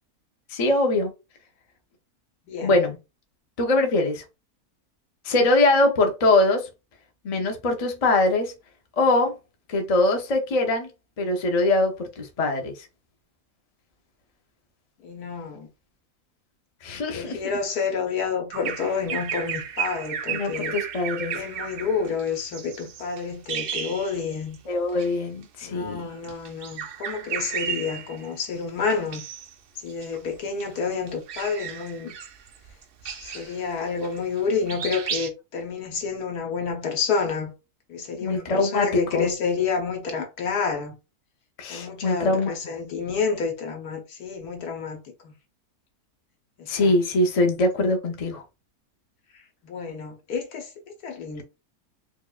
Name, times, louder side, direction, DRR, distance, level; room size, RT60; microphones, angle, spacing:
voice 1, 0.5-1.1 2.6-3.0 3.6-4.2 5.3-6.7 7.2-8.5 9.0-9.3 9.7-10.9 11.2-12.7 16.8-17.4 20.3-21.4 24.7-26.0 38.2-39.3 41.6-42.5 46.7-48.4, left 2 dB, 35° left, 0.5 m, -22 dB
voice 2, 2.5-2.9 15.0-15.7 17.1-20.8 21.3-24.6 25.6-29.2 29.8-32.1 33.2-37.5 37.9-40.9 41.7-45.3 46.6-47.0 49.6-50.7 51.0-51.4, left 5 dB, 85° left, 1.5 m, -29 dB
Bird vocalization bird call bird song, 18.5-24.6 24.9-25.1 26.1-28.4 28.9-29.5 29.9-34.4 34.7-35.3, right 8 dB, 85° right, 0.5 m, -34 dB
4.8 x 2.5 x 2.4 m
omnidirectional pair, 1.6 m